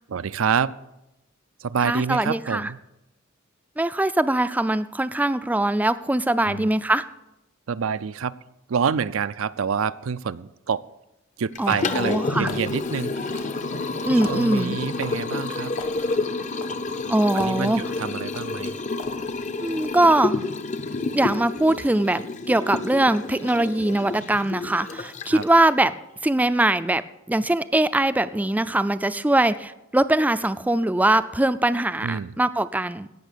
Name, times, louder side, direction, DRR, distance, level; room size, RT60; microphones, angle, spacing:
voice 1, 0.1-0.8 1.6-2.8 6.4-6.7 7.7-8.4 8.7-10.8 11.4-13.5 14.1-15.8 17.3-18.8 25.3-25.4 32.0-32.3, right 6 dB, 70° right, 16 dB, 0.4 m, -27 dB
voice 2, 1.8-2.7 3.8-7.0 11.6-12.5 14.0-14.8 17.1-17.8 19.6-20.4 21.1-25.9 26.2-27.0 27.3-33.1, right 1 dB, 10° right, 13 dB, 0.4 m, -22 dB
sound 1, 11.5-20.2, left 5 dB, 80° left, 1.3 m, -44 dB
Liquid, 11.6-25.6, left 3 dB, 35° left, 0.6 m, -29 dB
17.0 x 6.3 x 6.7 m, 0.93 s
head